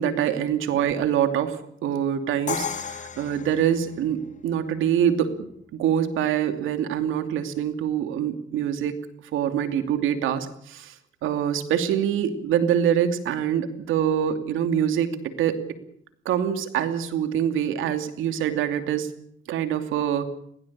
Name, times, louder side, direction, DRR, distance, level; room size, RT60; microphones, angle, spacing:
voice 1, 0.0-1.5 1.8-8.9 9.3-10.9 11.2-15.6 16.3-19.1 19.5-20.2, right 9 dB, 85° right, 9 dB, 2.6 m, -25 dB
Crash cymbal, 2.5-4.4, left 6 dB, 40° left, 1.0 m, -33 dB
21.5 x 17.0 x 8.6 m, 0.69 s
cardioid pair, 90°, 20 cm